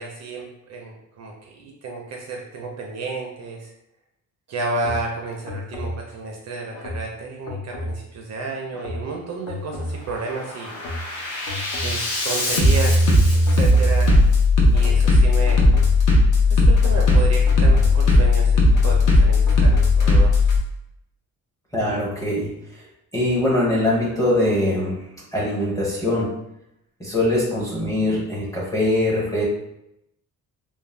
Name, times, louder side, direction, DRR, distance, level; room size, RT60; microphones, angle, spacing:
voice 1, 0.0-3.7 4.5-10.7 11.8-14.3 14.7-15.6 16.5-20.4 21.8-22.0, right 3 dB, 50° right, 0 dB, 0.4 m, -31 dB
Bass drum, 4.8-5.0 5.5-5.9 6.7-7.0 7.5-8.0 8.7-9.0 9.5-10.0 10.4-20.6, left 2 dB, 60° left, 0.6 m, -17 dB
voice 2, 21.7-22.5 23.1-25.0 25.3-26.3 27.0-29.4, left 1 dB, 10° left, -5 dB, 0.6 m, -22 dB
2.4 x 2.0 x 3.1 m, 0.82 s
cardioid pair, 175°, 36 cm